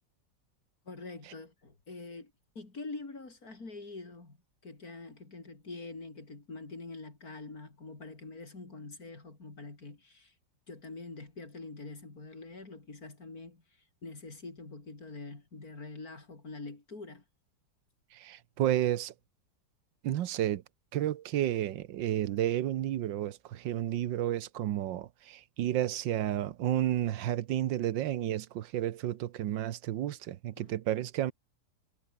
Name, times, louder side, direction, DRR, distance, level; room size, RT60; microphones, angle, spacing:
voice 1, 0.8-4.4 4.6-10.3 10.7-13.6 14.0-17.2 30.6-30.8, left 3 dB, 50° left, 4.5 m, -45 dB
voice 2, 18.1-19.1 20.0-20.6 20.9-31.3, right 12 dB, 90° right, 1.6 m, -31 dB
omnidirectional pair, 1.9 m